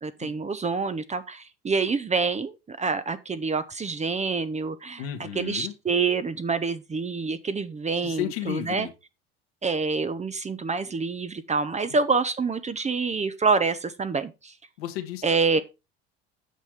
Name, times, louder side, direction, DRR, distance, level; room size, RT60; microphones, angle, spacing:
voice 1, 0.0-5.0 5.4-8.9 9.6-14.5 15.2-15.6, right 4 dB, 20° right, 0.8 m, -27 dB
voice 2, 5.0-5.7 8.0-8.9 11.9-12.0 14.8-15.2, left 12 dB, 80° left, 1.6 m, -33 dB
8.3 x 5.8 x 4.7 m
hypercardioid pair, 75°, 30 cm